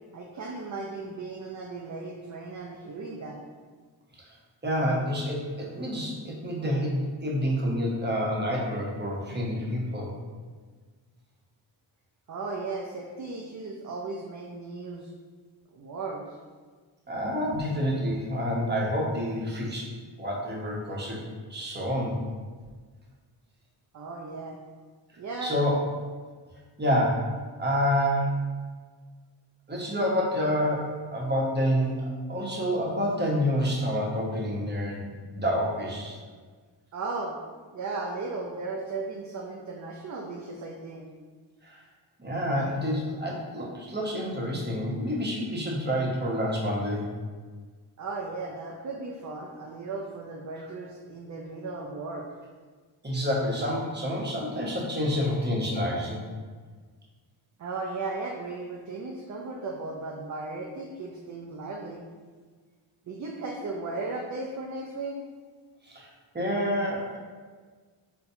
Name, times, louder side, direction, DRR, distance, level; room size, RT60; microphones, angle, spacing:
voice 1, 0.1-3.4 12.3-15.1 15.7-16.4 17.5-17.6 23.9-24.6 25.2-25.5 36.9-37.4 37.7-41.1 48.0-52.3 57.6-62.0 63.0-65.2, right 3 dB, 40° right, -1 dB, 0.4 m, -36 dB
voice 2, 4.6-10.1 17.1-19.9 20.2-21.2 21.5-22.2 25.4-25.8 26.8-27.3 27.6-28.4 29.7-35.1 35.3-36.2 41.6-41.8 42.2-47.1 53.0-56.2 65.8-66.1 66.3-67.2, equal, 20° right, -3 dB, 0.9 m, -28 dB
4.0 x 2.2 x 2.7 m, 1.5 s
cardioid pair, 45°, 49 cm